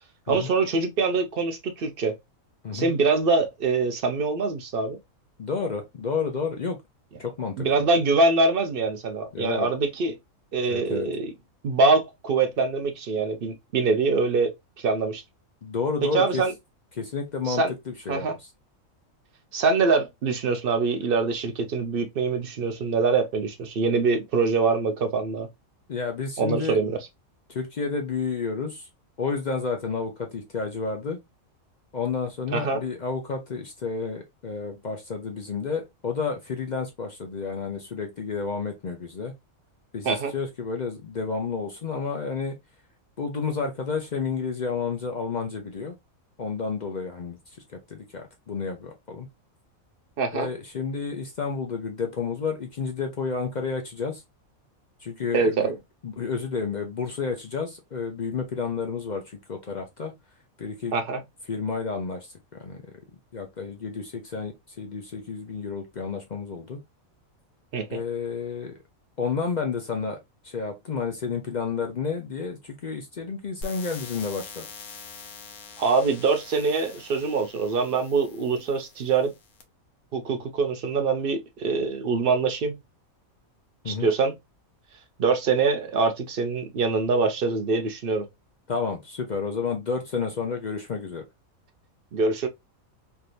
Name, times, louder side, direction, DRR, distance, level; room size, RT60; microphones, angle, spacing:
voice 1, 0.3-2.1 2.7-5.0 7.6-10.1 10.5-11.3 11.6-15.2 16.0-16.5 17.5-17.7 18.1-18.3 19.5-25.5 26.4-27.0 32.5-32.8 40.0-40.3 50.2-50.5 55.3-55.8 60.9-61.2 67.7-68.0 75.8-79.3 80.1-82.8 83.9-84.3 85.2-88.3 92.1-92.5, right 4 dB, 60° right, 0.6 m, -24 dB
voice 2, 5.4-6.8 7.2-7.9 9.3-9.7 10.7-11.1 15.6-16.4 17.0-18.3 25.9-26.8 27.5-28.9 29.2-31.2 31.9-39.3 39.9-42.6 43.2-45.9 46.4-47.4 47.9-49.3 50.3-54.2 55.0-55.7 56.0-60.1 60.6-60.9 61.5-62.3 62.6-62.8 63.3-66.8 67.9-68.7 69.2-70.2 70.4-74.6 83.8-84.1 88.7-91.2, left 5 dB, 50° left, 0.5 m, -30 dB
sound 1, 73.6-79.6, left 4 dB, 85° left, 1.2 m, -44 dB
3.4 x 2.8 x 2.4 m
omnidirectional pair, 1.5 m